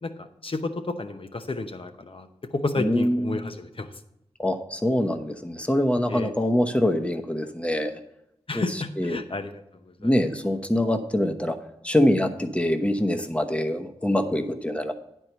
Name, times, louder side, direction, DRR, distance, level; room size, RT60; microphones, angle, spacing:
voice 1, 0.0-3.9 6.1-6.3 8.5-10.1, left 2 dB, 55° left, 8 dB, 0.8 m, -32 dB
voice 2, 2.8-3.5 4.4-8.0 8.5-9.2 10.0-11.6 11.8-14.9, left 1 dB, 10° left, 5 dB, 0.9 m, -24 dB
9.7 x 4.6 x 6.7 m, 0.81 s
cardioid pair, 45°, 11 cm